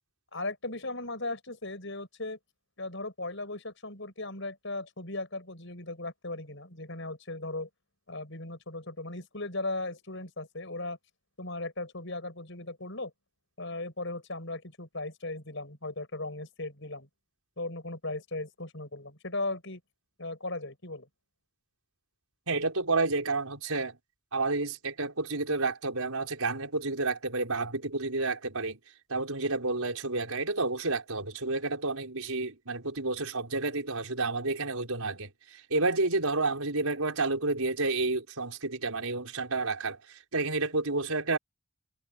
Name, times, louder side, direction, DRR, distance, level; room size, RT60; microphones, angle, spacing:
voice 1, 0.3-2.4 2.8-7.7 8.1-11.0 11.4-13.1 13.6-17.1 17.6-19.8 20.2-21.1, left 2 dB, 55° left, 6.5 m, -37 dB
voice 2, 22.5-24.0 24.3-28.8 29.1-41.4, right 3 dB, 80° right, 5.0 m, -30 dB
head